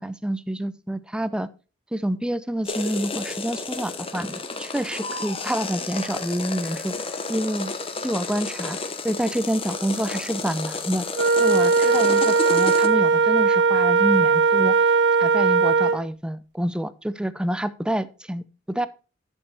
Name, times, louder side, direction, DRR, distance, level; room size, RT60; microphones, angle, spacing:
voice 1, 0.0-1.5 1.9-7.0 7.3-7.7 8.0-8.8 9.0-11.1 11.4-14.8 15.2-18.9, right 1 dB, 5° right, 16 dB, 0.4 m, -27 dB
sound 1, 2.6-12.9, left 3 dB, 30° left, 0.9 m, -32 dB
Wind instrument woodwind instrument, 11.2-16.0, right 4 dB, 90° right, 0.8 m, -19 dB
11.0 x 5.4 x 4.3 m, 0.34 s
head